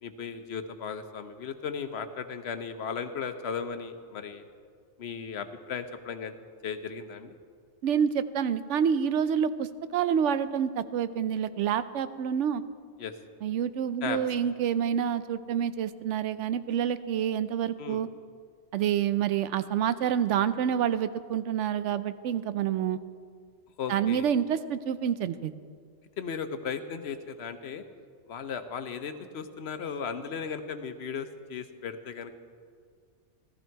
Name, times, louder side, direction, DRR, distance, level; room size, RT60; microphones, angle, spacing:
voice 1, 0.0-4.4 5.0-6.3 6.6-7.3 13.0-13.1 14.0-14.2 17.8-18.0 23.8-24.2 26.2-27.8 28.3-32.3, left 6 dB, 65° left, 9 dB, 1.0 m, -36 dB
voice 2, 7.8-12.6 13.4-18.1 18.7-23.0 23.9-25.5, right 8 dB, 80° right, 13 dB, 0.9 m, -28 dB
15.0 x 14.0 x 4.6 m, 2.1 s
omnidirectional pair, 1.2 m